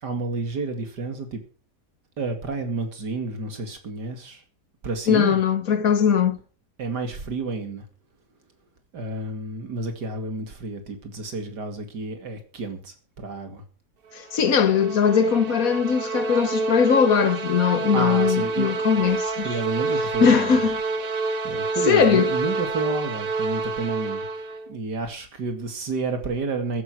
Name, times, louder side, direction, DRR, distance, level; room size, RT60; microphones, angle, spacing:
voice 1, 0.0-1.4 2.2-4.4 4.8-5.4 6.8-7.8 8.9-13.6 17.9-19.0 19.4-20.6 21.4-24.3 24.7-26.8, right 3 dB, 85° right, 2.9 m, -30 dB
voice 2, 5.1-6.4 14.2-19.5 20.2-20.8 21.9-22.3, left 7 dB, 60° left, 1.5 m, -20 dB
sound 1, 14.1-24.7, right 3 dB, 40° right, 1.0 m, -28 dB
15.0 x 8.7 x 6.2 m
omnidirectional pair, 1.7 m